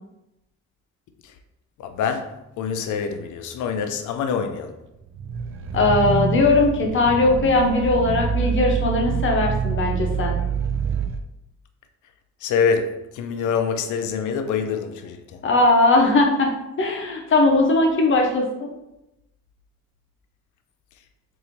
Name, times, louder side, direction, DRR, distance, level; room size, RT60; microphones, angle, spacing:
voice 1, 1.8-4.8 12.4-15.4, left 6 dB, 80° left, 0.5 m, -25 dB
sound 1, 5.1-11.2, right 6 dB, 45° right, 0.4 m, -26 dB
voice 2, 5.7-10.4 15.4-16.5 16.8-18.7, left 2 dB, 40° left, 0.9 m, -19 dB
4.2 x 2.7 x 2.7 m
cardioid pair, 90°, 30 cm